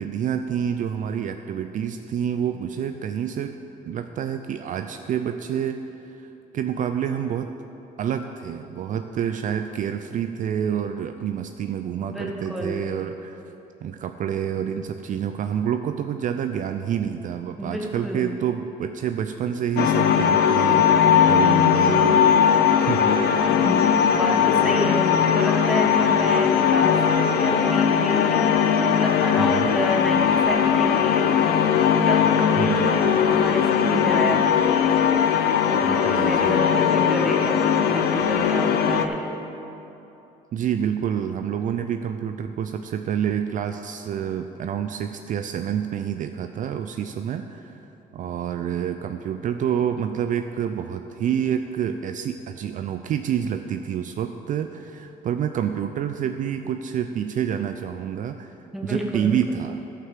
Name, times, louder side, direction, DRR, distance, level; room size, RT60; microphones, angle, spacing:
voice 1, 0.0-3.6 3.8-7.5 8.0-13.4 13.8-23.2 24.6-24.9 29.4-29.7 32.6-32.9 35.8-36.6 40.5-47.9 48.1-58.5 58.8-59.8, right 8 dB, 50° right, 7 dB, 0.4 m, -28 dB
voice 2, 12.0-12.8 17.6-18.3 23.5-31.6 32.1-34.6 35.6-39.1 58.7-59.2, equal, ahead, -1 dB, 1.6 m, -29 dB
sound 1, 19.8-39.1, left 8 dB, 70° left, 0.7 m, -19 dB
11.5 x 5.9 x 7.4 m, 2.9 s
cardioid pair, 110°, 17 cm